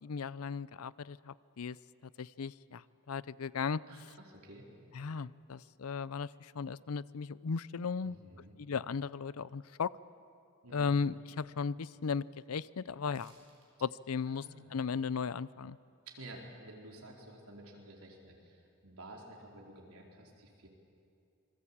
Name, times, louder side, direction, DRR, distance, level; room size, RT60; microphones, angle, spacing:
voice 1, 0.0-1.8 2.2-2.8 3.1-3.8 4.9-8.2 8.6-9.9 10.7-13.3 13.8-14.4 14.7-15.8, left 5 dB, 80° left, 19 dB, 0.5 m, -36 dB
voice 2, 3.9-4.7 8.0-8.6 10.6-10.9 14.3-14.7 16.1-20.7, right 1 dB, 85° right, 0 dB, 4.4 m, -51 dB
sound 1, 13.1-13.7 14.0-14.1, right 5 dB, 65° right, 5.8 m, -64 dB
27.5 x 21.5 x 8.7 m, 2.5 s
head